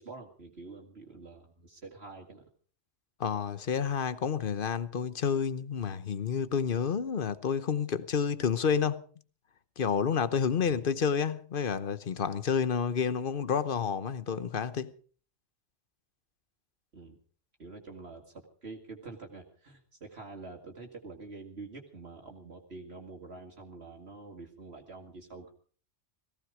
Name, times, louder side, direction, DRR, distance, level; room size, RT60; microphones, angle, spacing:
voice 1, 0.0-2.4 10.6-10.9 16.9-17.2 17.6-25.5, right 3 dB, 60° right, 2.3 m, -47 dB
voice 2, 3.2-9.0 9.8-14.9, left 7 dB, 50° left, 1.1 m, -29 dB
18.0 x 16.0 x 5.0 m
omnidirectional pair, 1.2 m